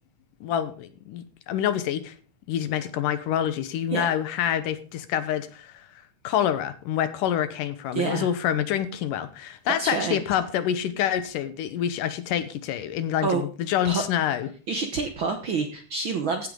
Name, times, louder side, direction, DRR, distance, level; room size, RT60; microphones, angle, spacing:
voice 1, 0.4-2.2 2.5-5.9 6.2-14.5, left 10 dB, 90° left, 11 dB, 2.7 m, -27 dB
voice 2, 7.9-8.3 9.7-10.2 13.2-13.4 13.8-14.0 14.7-16.5, right 4 dB, 65° right, 6 dB, 1.3 m, -27 dB
15.5 x 9.2 x 3.9 m, 0.39 s
omnidirectional pair, 3.7 m